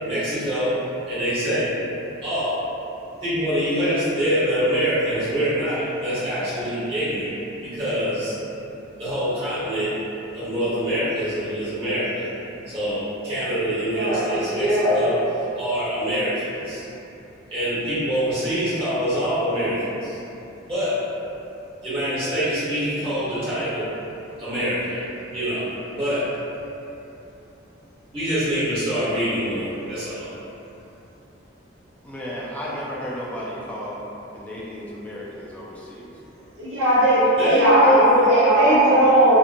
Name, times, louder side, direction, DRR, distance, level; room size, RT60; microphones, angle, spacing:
voice 1, 0.0-0.7 1.1-1.7 2.2-2.6 3.2-7.3 7.6-8.3 9.0-9.9 10.3-12.3 12.7-16.8 17.5-20.2 20.7-21.0 21.8-23.8 24.4-25.0 25.3-26.3 28.1-30.3 37.4-39.0, equal, 30° right, -14 dB, 1.1 m, -24 dB
voice 2, 13.9-14.3 32.7-32.8 36.6-38.2 38.5-39.4, right 1 dB, 75° right, -9 dB, 0.9 m, -18 dB
voice 3, 32.0-34.0 34.3-36.2, equal, 5° left, -6 dB, 0.3 m, -34 dB
2.6 x 2.6 x 2.5 m, 2.9 s
head